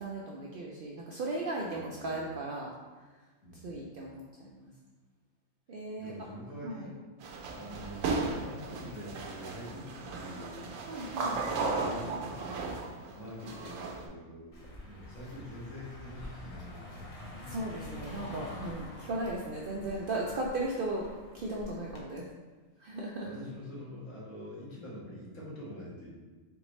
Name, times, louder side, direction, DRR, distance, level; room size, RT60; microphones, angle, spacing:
voice 1, 0.0-2.7 3.6-4.7 5.7-6.1 6.6-6.9 10.9-11.4 17.5-21.0 21.3-22.3 22.8-23.3, right 2 dB, 65° right, -3 dB, 0.5 m, -36 dB
voice 2, 1.7-2.3 3.4-3.8 6.0-7.0 7.5-17.5 18.1-18.4 23.2-26.1, equal, 70° left, -6 dB, 1.6 m, -46 dB
sound 1, 7.2-14.1, right 3 dB, 80° right, 1.0 m, -36 dB
Car passing by, 14.5-22.0, left 1 dB, 40° left, 0.6 m, -47 dB
3.9 x 3.4 x 3.1 m, 1.3 s
omnidirectional pair, 1.4 m